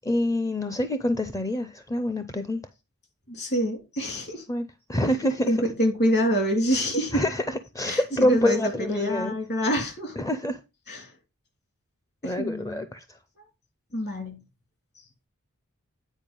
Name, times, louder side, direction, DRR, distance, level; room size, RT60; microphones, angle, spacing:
voice 1, 0.0-2.6 4.5-5.5 7.1-9.3 10.2-10.6 12.2-13.2, left 1 dB, 15° left, 0.5 m, -26 dB
voice 2, 3.3-4.4 5.5-7.2 7.8-10.2 10.9-11.1 12.2-12.8 13.4-13.5 13.9-14.4, equal, 50° left, 3.2 m, -26 dB
9.1 x 4.8 x 5.2 m
head